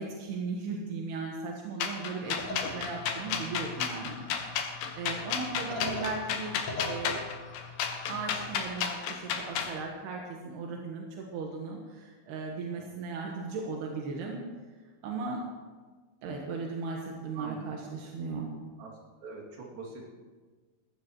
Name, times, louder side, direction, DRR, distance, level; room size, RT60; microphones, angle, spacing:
voice 1, 0.0-4.2 5.0-7.2 8.1-14.5 15.0-15.5 16.2-18.5, right 4 dB, 85° right, 0 dB, 3.4 m, -37 dB
sound 1, 1.8-9.7, left 7 dB, 75° left, 3.0 m, -33 dB
sound 2, 2.2-8.7, left 3 dB, 60° left, 1.4 m, -42 dB
voice 2, 17.3-17.9 18.8-18.9 19.2-20.1, right 4 dB, 65° right, -3 dB, 4.3 m, -44 dB
20.0 x 15.0 x 3.1 m, 1.4 s
omnidirectional pair, 4.5 m